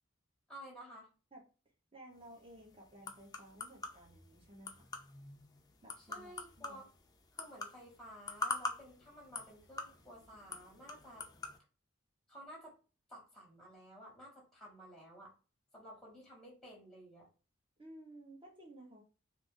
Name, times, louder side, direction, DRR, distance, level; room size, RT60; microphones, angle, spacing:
voice 1, 0.5-1.1 6.0-6.9 7.3-11.2 12.3-12.8 13.1-15.3 15.7-17.3, equal, 5° left, -2 dB, 1.1 m, -53 dB
voice 2, 1.9-4.9 5.8-6.8 17.8-19.0, right 1 dB, 25° right, -1 dB, 0.9 m, -55 dB
sound 1, 2.1-11.6, left 3 dB, 20° left, 0.4 m, -45 dB
2.6 x 2.5 x 3.7 m, 0.35 s
head